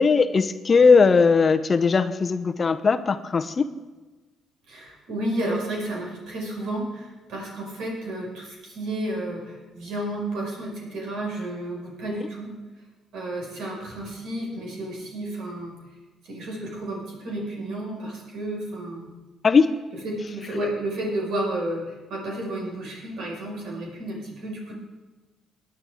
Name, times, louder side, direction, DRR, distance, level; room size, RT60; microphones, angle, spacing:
voice 1, 0.0-3.7 19.4-19.7, left 5 dB, 40° left, 12 dB, 0.7 m, -18 dB
voice 2, 4.7-12.5 13.1-15.8 16.2-19.1 19.9-24.7, right 1 dB, 75° right, -2 dB, 5.2 m, -31 dB
19.0 x 9.9 x 3.6 m, 1.2 s
supercardioid pair, 65°, 0 cm